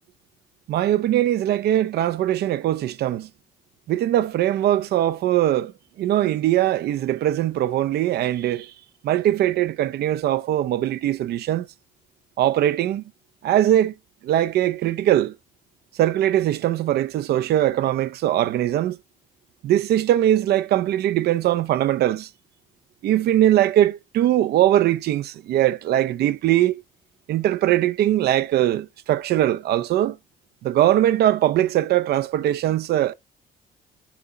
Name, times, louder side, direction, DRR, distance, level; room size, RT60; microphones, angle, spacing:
voice 1, 0.7-3.3 3.9-5.7 6.0-8.7 9.0-11.7 12.4-13.0 13.4-13.9 14.2-15.3 16.0-19.0 19.6-22.3 23.0-26.8 27.3-30.2 30.6-33.1, right 12 dB, 70° right, 0.6 m, -21 dB
6.1 x 3.9 x 4.1 m
supercardioid pair, 70°, 17 cm